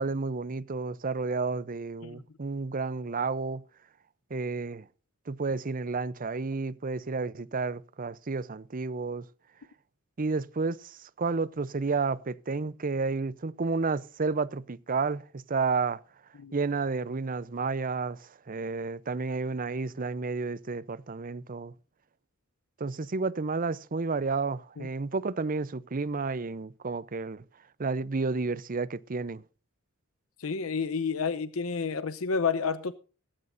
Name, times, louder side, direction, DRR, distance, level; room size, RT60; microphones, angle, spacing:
voice 1, 0.0-3.6 4.3-4.9 5.3-9.3 10.2-16.0 16.5-21.7 22.8-27.4 27.8-29.4, right 4 dB, 40° right, 0.6 m, -31 dB
voice 2, 30.4-32.9, left 5 dB, 75° left, 0.7 m, -30 dB
16.5 x 15.0 x 2.6 m
head